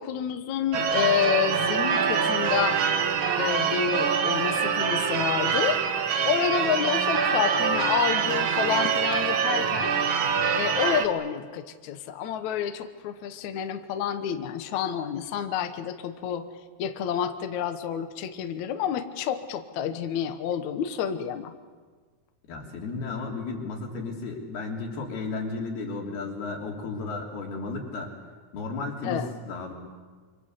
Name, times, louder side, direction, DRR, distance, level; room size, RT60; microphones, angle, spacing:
voice 1, 0.0-2.8 3.4-5.8 6.3-9.9 10.5-16.5 16.8-21.5 29.0-29.3, left 9 dB, 65° left, 8 dB, 2.1 m, -29 dB
Church bell / Car / Alarm, 0.7-11.1, right 7 dB, 85° right, 1.1 m, -25 dB
voice 2, 22.5-28.1 28.5-29.7, left 3 dB, 80° left, 0 dB, 5.5 m, -34 dB
26.5 x 25.5 x 8.2 m, 1.5 s
omnidirectional pair, 4.4 m